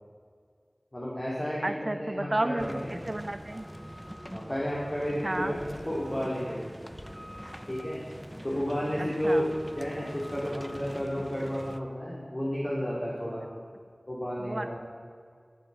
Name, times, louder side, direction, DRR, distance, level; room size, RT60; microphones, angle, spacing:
voice 1, 0.9-3.0 4.3-6.6 7.7-8.0 8.4-9.5 9.8-13.5 14.1-14.8, equal, 40° left, -6 dB, 3.7 m, -32 dB
voice 2, 1.6-3.7 5.2-5.6 9.0-9.5 14.4-14.7, right 1 dB, 50° right, 8 dB, 1.2 m, -32 dB
sound 1, 2.6-11.8, equal, ahead, 0.8 m, -44 dB
14.5 x 9.3 x 7.9 m, 2.1 s
wide cardioid pair, 40°, 0 cm